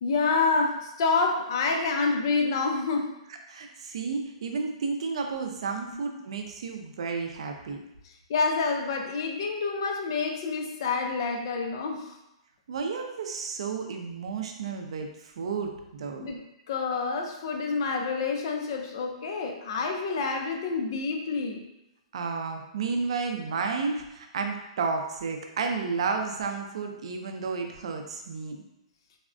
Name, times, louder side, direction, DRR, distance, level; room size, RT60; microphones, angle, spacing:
voice 1, 0.0-3.2 5.9-6.0 8.0-12.2 16.2-21.6, left 4 dB, 45° left, 3 dB, 0.4 m, -28 dB
voice 2, 3.5-7.8 12.7-16.3 22.1-28.6, right 4 dB, 60° right, 4 dB, 0.4 m, -32 dB
3.4 x 2.1 x 2.5 m, 0.89 s
hypercardioid pair, 170°, 3 cm